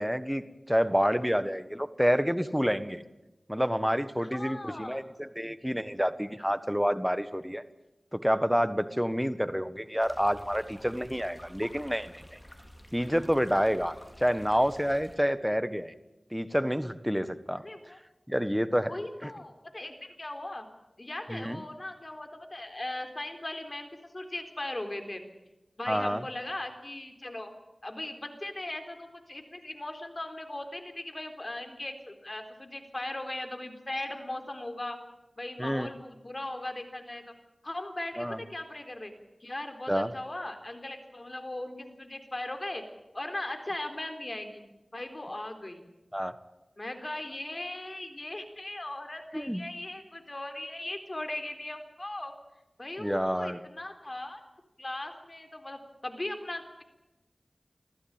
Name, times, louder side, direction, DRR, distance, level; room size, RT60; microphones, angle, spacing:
voice 1, 0.0-3.0 3.5-7.6 8.1-12.4 12.9-15.9 16.3-17.6 18.3-18.9 19.2-19.3 21.3-21.6 25.9-26.2 35.6-35.9 38.2-38.4 39.9-40.1 46.1-46.3 49.3-49.6 53.0-53.6, equal, ahead, 12 dB, 1.5 m, -28 dB
voice 2, 4.2-5.0 13.0-13.2 17.6-18.0 18.9-20.7 21.0-23.9 24.1-25.2 25.8-27.5 27.8-35.0 35.4-37.2 37.6-39.1 39.4-42.8 43.1-44.6 44.9-45.9 46.8-52.3 52.8-54.4 54.8-56.8, left 1 dB, 40° left, 6 dB, 3.9 m, -38 dB
sound 1, 10.0-15.2, equal, 20° left, 4.9 m, -51 dB
26.5 x 15.0 x 9.0 m, 1.0 s
wide cardioid pair, 55°, 0 cm